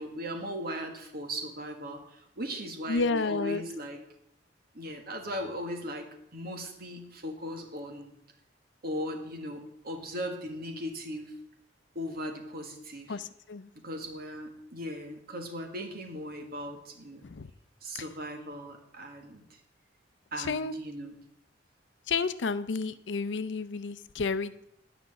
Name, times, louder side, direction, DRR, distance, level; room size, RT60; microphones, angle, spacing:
voice 1, 0.0-4.0 4.7-8.1 8.8-11.3 11.9-13.2 13.8-17.2 17.8-19.4 20.3-21.1, equal, 55° right, 4 dB, 1.6 m, -38 dB
voice 2, 2.9-3.6 13.1-13.7 17.2-17.5 17.9-18.0 20.4-20.7 22.1-24.6, left 4 dB, 70° left, 14 dB, 0.5 m, -31 dB
9.9 x 5.9 x 7.0 m, 0.76 s
head